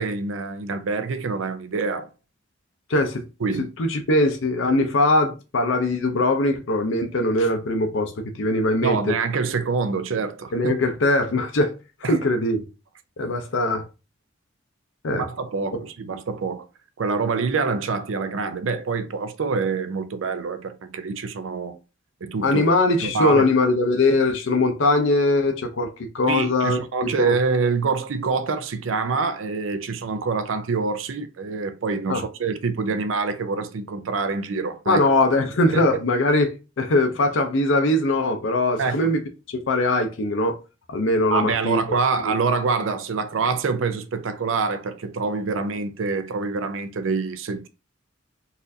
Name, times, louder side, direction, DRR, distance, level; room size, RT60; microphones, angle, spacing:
voice 1, 0.0-2.1 3.4-3.7 8.8-10.7 12.0-12.2 15.1-16.7 17.0-21.8 22.2-22.6 23.0-23.5 26.3-35.0 35.7-35.8 38.8-39.1 41.3-47.7, right 4 dB, 90° right, 0.5 m, -26 dB
voice 2, 2.9-3.2 3.8-9.1 10.5-11.7 12.1-12.7 13.2-13.8 15.0-15.2 22.4-26.8 27.2-27.4 32.1-32.2 34.9-39.2 39.5-40.5 40.9-41.8 42.2-42.3, left 2 dB, 70° left, 0.6 m, -21 dB
4.1 x 2.5 x 2.7 m
head